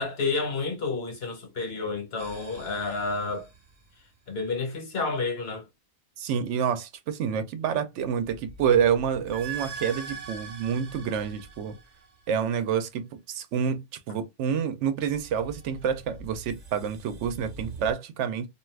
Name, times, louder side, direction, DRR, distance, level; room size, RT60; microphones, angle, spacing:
voice 1, 0.0-3.5 4.3-5.6, left 3 dB, 60° left, 1.1 m, -30 dB
sound 1, 2.2-4.1 8.0-12.5 15.0-17.9, right 5 dB, 45° right, 0.8 m, -43 dB
voice 2, 6.2-11.8 12.3-18.5, right 7 dB, 80° right, 0.9 m, -28 dB
2.5 x 2.4 x 3.1 m
omnidirectional pair, 1.2 m